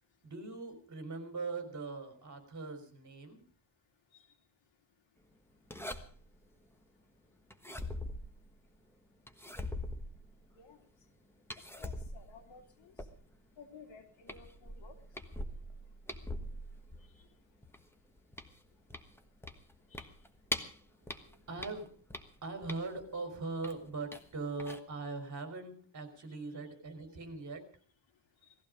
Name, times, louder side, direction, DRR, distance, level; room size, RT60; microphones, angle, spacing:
voice 1, 0.2-3.4 21.0-21.9 22.4-27.6, right 3 dB, 40° right, 7 dB, 4.1 m, -41 dB
sound 1, 5.7-6.4 7.5-8.8 9.3-10.6 11.5-13.5 13.9-14.0 14.3-17.2 17.6-20.8 21.1-23.1 23.6-24.3 24.6-24.8, left 1 dB, 5° left, 1.3 m, -42 dB
voice 2, 11.8-12.9 13.6-14.9 17.0-17.3 19.9-20.1 28.4-28.5, left 5 dB, 85° left, 3 dB, 3.2 m, -55 dB
18.5 x 15.0 x 5.1 m, 0.43 s
cardioid pair, 140°, 44 cm